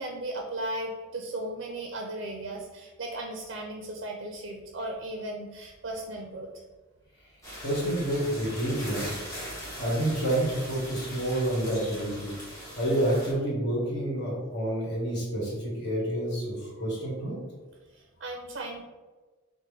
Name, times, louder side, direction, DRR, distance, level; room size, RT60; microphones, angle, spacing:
voice 1, 0.0-6.6 17.9-18.8, right 1 dB, 55° right, 1 dB, 0.4 m, -36 dB
sound 1, 7.4-13.3, equal, 15° left, 1.4 m, -40 dB
voice 2, 7.6-9.1 9.8-17.3, right 1 dB, 55° left, -4 dB, 1.5 m, -29 dB
5.7 x 2.1 x 3.3 m, 1.3 s
head